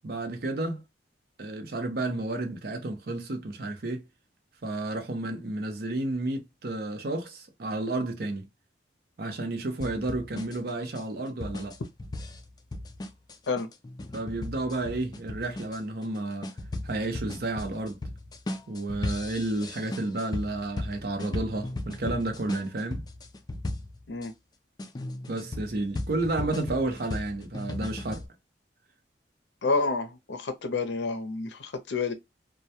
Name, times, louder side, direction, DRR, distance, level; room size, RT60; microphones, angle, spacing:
voice 1, 0.0-0.8 1.4-4.1 4.6-8.5 9.2-11.8 14.1-16.5 16.8-18.0 18.7-23.0 25.3-28.2, right 2 dB, 55° right, 0.6 m, -31 dB
sound 1, 9.8-24.3 24.8-28.3, left 2 dB, 25° left, 0.3 m, -36 dB
voice 2, 29.6-32.1, left 3 dB, 75° left, 0.6 m, -29 dB
2.2 x 2.1 x 2.7 m
head